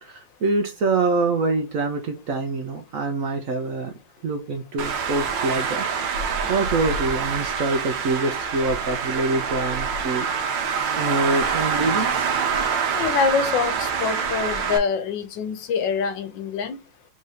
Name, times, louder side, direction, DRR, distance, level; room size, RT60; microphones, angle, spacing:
voice 1, 0.0-3.9 4.2-5.9 6.5-10.7 10.9-12.4, right 3 dB, 60° right, 0.9 m, -25 dB
Traffic noise roadway noise, 4.8-14.8, right 6 dB, 80° right, 1.6 m, -25 dB
voice 2, 12.9-16.8, left 6 dB, 85° left, 1.5 m, -25 dB
3.8 x 2.8 x 4.8 m
omnidirectional pair, 2.0 m